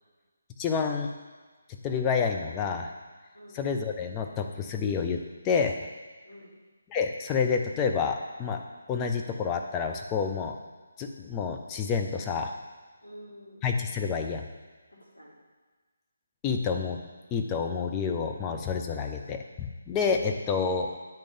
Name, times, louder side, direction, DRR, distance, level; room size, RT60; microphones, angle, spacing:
voice 1, 0.6-1.1 1.8-2.9 3.6-5.2 5.4-5.8 6.9-8.6 8.9-10.5 11.0-12.5 13.6-14.4 16.4-17.0 17.3-21.0, left 5 dB, 15° left, 3 dB, 0.5 m, -28 dB
voice 2, 13.0-13.6 14.9-15.3 18.9-19.4, equal, 75° left, -4 dB, 2.5 m, -49 dB
8.9 x 3.7 x 5.4 m, 1.4 s
figure-of-eight pair, 150°, 0 cm